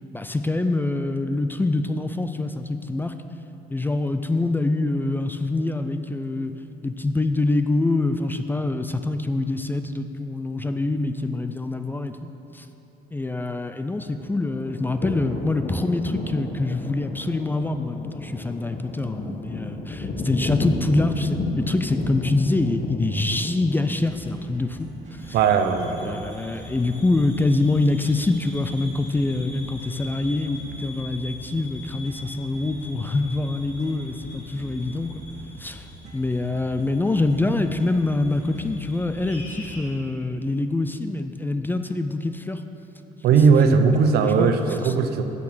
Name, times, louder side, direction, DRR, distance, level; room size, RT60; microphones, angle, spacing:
voice 1, 0.1-3.1 3.7-6.5 6.8-12.2 12.5-12.7 13.1-25.4 26.0-35.1 35.6-35.9 36.1-42.6 43.6-43.8 44.2-44.5 44.8-44.9, left 2 dB, 10° left, 9 dB, 0.4 m, -25 dB
sound 1, 14.0-24.4, left 2 dB, 35° left, 1.0 m, -32 dB
sound 2, 24.0-40.0, right 1 dB, 45° right, 1.7 m, -44 dB
sound 3, 25.2-39.8, left 2 dB, 70° left, 2.4 m, -44 dB
voice 2, 25.3-26.3 43.2-45.2, right 5 dB, 70° right, 7 dB, 0.7 m, -18 dB
8.3 x 6.7 x 6.2 m, 2.9 s
cardioid pair, 110°, 17 cm